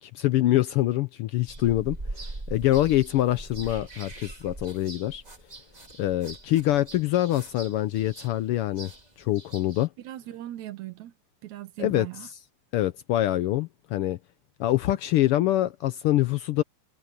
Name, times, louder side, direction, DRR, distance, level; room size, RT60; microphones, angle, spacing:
voice 1, 0.0-5.2 6.0-8.9 9.2-9.9 11.8-12.1 12.7-14.2 14.6-16.6, left 14 dB, 85° left, 1.2 m, -25 dB
sound 1, 1.5-9.9, right 2 dB, 15° right, 1.5 m, -41 dB
voice 2, 10.0-11.1 11.4-12.3, right 14 dB, 75° right, 2.3 m, -39 dB
omnidirectional pair, 3.3 m